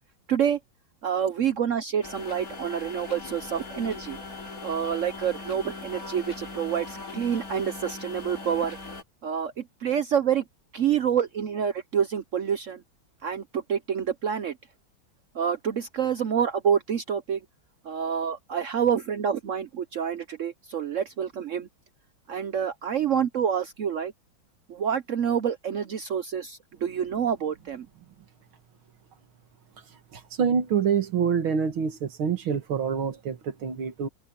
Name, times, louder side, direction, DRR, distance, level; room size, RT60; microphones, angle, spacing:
voice 1, 0.3-0.6 1.0-4.2 4.6-8.8 9.2-10.4 10.7-12.8 13.2-14.6 15.3-17.4 17.8-21.7 22.3-24.1 24.7-27.9, right 8 dB, 70° right, 0.7 m, -27 dB
sound 1, 2.0-9.0, left 3 dB, 45° left, 3.2 m, -40 dB
voice 2, 30.1-34.1, right 7 dB, 90° right, 2.6 m, -26 dB
omnidirectional pair, 2.2 m